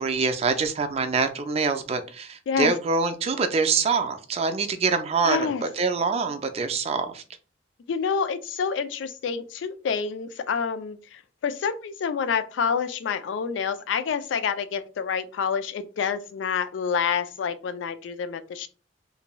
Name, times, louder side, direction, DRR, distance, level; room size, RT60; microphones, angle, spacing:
voice 1, 0.0-7.2, right 4 dB, 35° right, 0.3 m, -25 dB
voice 2, 5.2-5.6 7.9-18.7, left 6 dB, 85° left, 0.3 m, -28 dB
2.6 x 2.2 x 3.0 m
head